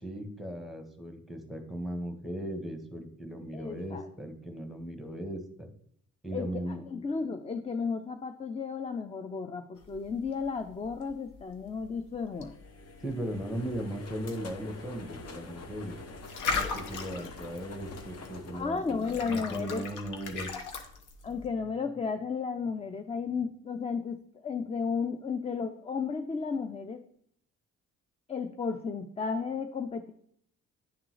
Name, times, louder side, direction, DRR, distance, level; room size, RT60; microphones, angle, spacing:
voice 1, 0.0-5.7 6.2-6.8 13.0-16.0 16.5-20.5, right 1 dB, ahead, 6 dB, 1.3 m, -37 dB
voice 2, 3.5-4.1 6.3-6.6 6.9-12.5 18.5-19.8 21.2-27.0 28.3-30.1, left 5 dB, 20° left, 7 dB, 0.5 m, -33 dB
sound 1, 9.8-21.5, left 4 dB, 85° left, 1.1 m, -40 dB
sound 2, 12.3-19.6, left 2 dB, 55° left, 1.0 m, -46 dB
10.0 x 3.7 x 3.1 m, 0.67 s
cardioid pair, 90°, 30 cm